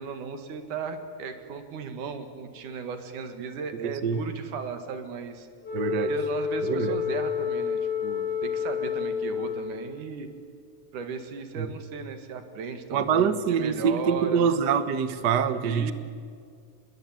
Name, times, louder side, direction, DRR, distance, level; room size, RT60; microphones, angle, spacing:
voice 1, 0.0-5.5 6.1-10.3 10.9-14.5 15.6-15.9, right 5 dB, 85° right, 3.4 m, -36 dB
voice 2, 3.8-4.2 5.7-6.1 6.6-7.0 11.6-11.7 12.9-15.9, right 7 dB, 55° right, 1.2 m, -25 dB
Wind instrument woodwind instrument, 5.6-10.0, left 7 dB, 45° left, 7.9 m, -29 dB
27.5 x 21.5 x 9.1 m
omnidirectional pair, 3.5 m